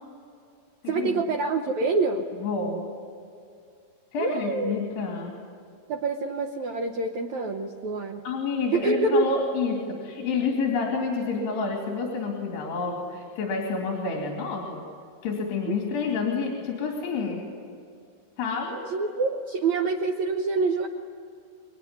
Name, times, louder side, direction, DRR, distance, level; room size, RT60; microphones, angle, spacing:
voice 1, 0.9-2.2 4.2-4.8 5.9-8.2 8.7-9.4 15.7-15.8 18.9-20.9, right 3 dB, 70° right, 3 dB, 1.7 m, -26 dB
voice 2, 2.4-2.9 4.1-5.3 8.2-14.8 15.2-17.5 18.4-18.8, left 4 dB, 75° left, 0 dB, 4.8 m, -29 dB
26.5 x 22.5 x 9.6 m, 2.4 s
omnidirectional pair, 4.7 m